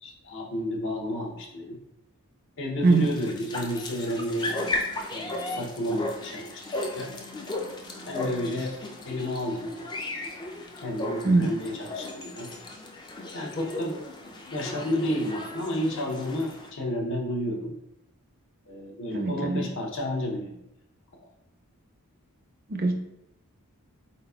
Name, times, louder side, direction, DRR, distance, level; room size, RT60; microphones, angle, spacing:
voice 1, 0.0-1.8 2.6-4.5 5.1-7.1 8.1-8.8 9.0-9.7 10.1-10.5 10.8-12.5 13.3-14.0 14.5-17.8 18.7-20.6, left 1 dB, 55° left, 0 dB, 0.8 m, -31 dB
sound 1, 2.9-16.7, left 2 dB, 20° left, 0.4 m, -35 dB
voice 2, 19.1-19.7 22.7-22.9, right 3 dB, 40° right, 3 dB, 0.5 m, -22 dB
4.1 x 4.0 x 2.3 m, 0.86 s
head